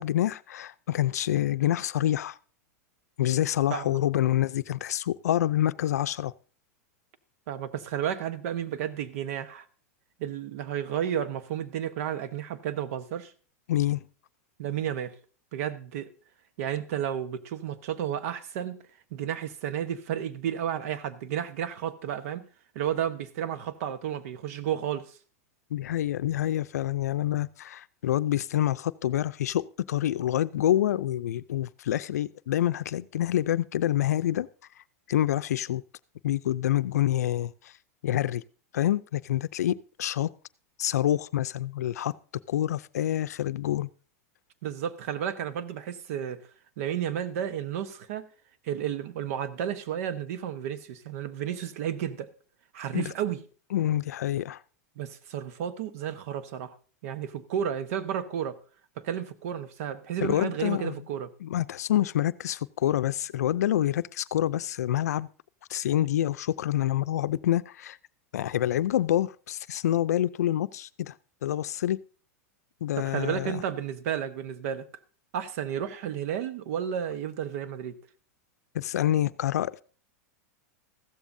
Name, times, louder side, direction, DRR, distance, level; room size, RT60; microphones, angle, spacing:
voice 1, 0.0-2.4 3.2-6.3 13.7-14.0 25.7-34.5 35.1-35.8 36.2-37.7 38.0-38.4 38.7-40.3 40.8-42.1 42.5-43.9 52.9-53.1 53.7-54.6 60.2-60.9 61.4-65.3 65.7-68.0 68.3-71.1 71.4-72.0 72.8-73.6 78.7-79.8, left 12 dB, 90° left, 0.5 m, -27 dB
voice 2, 3.7-4.0 7.5-9.7 10.2-13.3 14.6-15.2 15.5-16.1 16.6-18.8 19.1-22.5 22.7-25.2 44.6-46.4 46.8-48.3 48.6-52.3 52.7-53.4 55.0-56.7 57.0-58.6 59.0-61.3 73.0-74.9 75.3-78.0, right 9 dB, 65° right, 1.1 m, -32 dB
15.0 x 12.5 x 2.7 m
hypercardioid pair, 125°, 8 cm